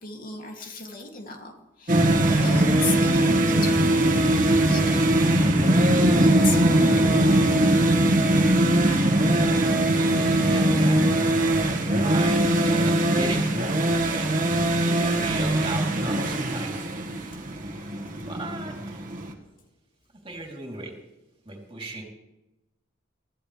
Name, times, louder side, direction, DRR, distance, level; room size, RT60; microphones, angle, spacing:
voice 1, 0.0-5.7 6.2-7.5 19.4-19.5, left 4 dB, 45° left, 1 dB, 2.7 m, -37 dB
sound 1, 1.9-19.3, right 1 dB, 45° right, 1.8 m, -21 dB
voice 2, 8.2-19.0 20.2-20.9 21.4-22.0, right 2 dB, 30° right, 0 dB, 3.4 m, -37 dB
23.5 x 15.5 x 3.4 m, 0.96 s
head